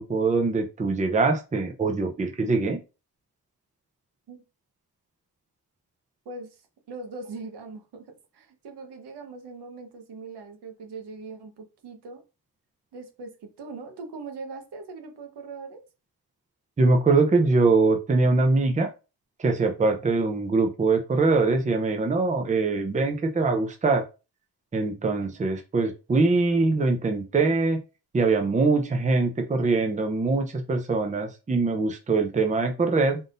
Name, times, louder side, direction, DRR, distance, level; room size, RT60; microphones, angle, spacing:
voice 1, 0.0-2.8 16.8-18.9 19.4-24.0 24.7-27.8 28.1-33.2, right 3 dB, 20° right, 0.6 m, -23 dB
voice 2, 6.2-12.2 12.9-15.8, right 3 dB, 80° right, 1.2 m, -41 dB
3.8 x 3.7 x 2.6 m
wide cardioid pair, 130°, 40 cm